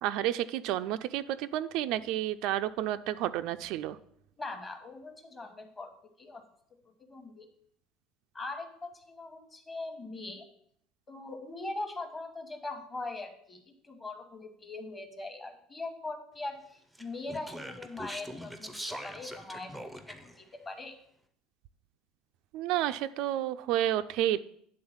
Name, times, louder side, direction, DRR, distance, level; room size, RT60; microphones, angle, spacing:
voice 1, 0.0-4.0 22.5-24.4, right 12 dB, 55° right, 11 dB, 0.3 m, -30 dB
voice 2, 4.4-5.9 6.2-6.4 7.1-7.5 8.3-10.5 11.1-19.7 20.2-20.9, left 2 dB, 15° left, 6 dB, 1.0 m, -41 dB
Speech, 16.9-20.4, equal, ahead, 0.5 m, -42 dB
9.5 x 3.8 x 7.1 m, 0.67 s
cardioid pair, 165°, 0 cm